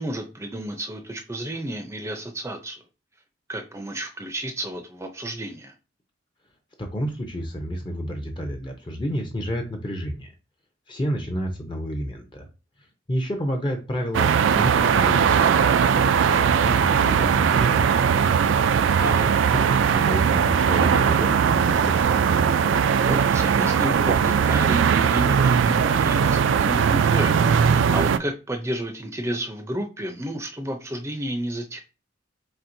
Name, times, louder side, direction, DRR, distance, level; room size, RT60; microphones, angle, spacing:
voice 1, 0.0-2.8 3.5-5.7 19.0-19.3 22.7-31.8, right 1 dB, 15° right, 5 dB, 0.5 m, -32 dB
voice 2, 6.8-10.3 10.9-12.5 13.1-15.6 16.0-18.2 19.7-22.0, equal, 25° left, 4 dB, 0.6 m, -30 dB
sound 1, 14.1-28.2, right 7 dB, 85° right, 0.3 m, -19 dB
4.3 x 4.2 x 2.6 m, 0.31 s
head